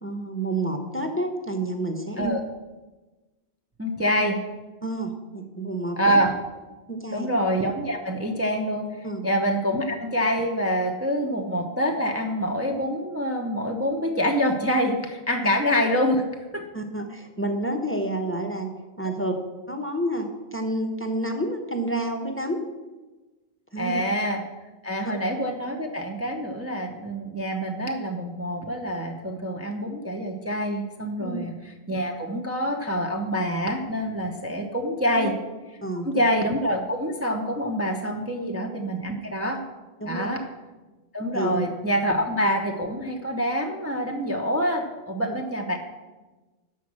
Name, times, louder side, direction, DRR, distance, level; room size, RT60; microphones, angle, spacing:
voice 1, 0.0-2.4 4.8-6.2 6.9-7.3 9.0-9.2 15.4-15.5 16.7-18.7 19.0-19.3 19.7-22.6 23.7-24.0 31.2-31.5 35.1-35.3 35.8-36.3 38.4-38.5 40.0-40.3 41.3-41.6, right 1 dB, 10° left, 4 dB, 0.9 m, -29 dB
voice 2, 3.8-4.4 6.0-6.3 7.1-16.2 16.5-16.6 23.8-24.4 24.8-35.3 36.0-39.6 40.0-40.4 41.1-45.8, equal, 15° right, 2 dB, 0.8 m, -26 dB
12.5 x 4.6 x 7.4 m, 1.2 s
omnidirectional pair, 1.1 m